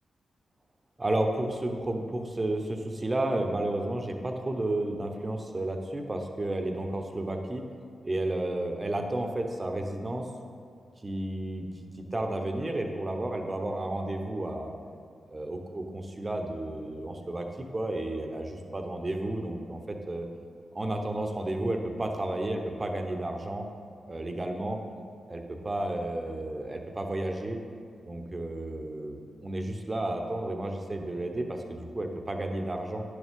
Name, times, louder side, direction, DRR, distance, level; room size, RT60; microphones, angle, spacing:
voice 1, 1.0-7.7 8.0-10.3 11.0-14.7 15.3-20.3 20.7-23.7 24.0-24.8 25.3-27.6 28.1-33.0, right 1 dB, 35° right, 4 dB, 1.0 m, -32 dB
10.0 x 6.4 x 3.7 m, 2.3 s
supercardioid pair, 40°, 0 cm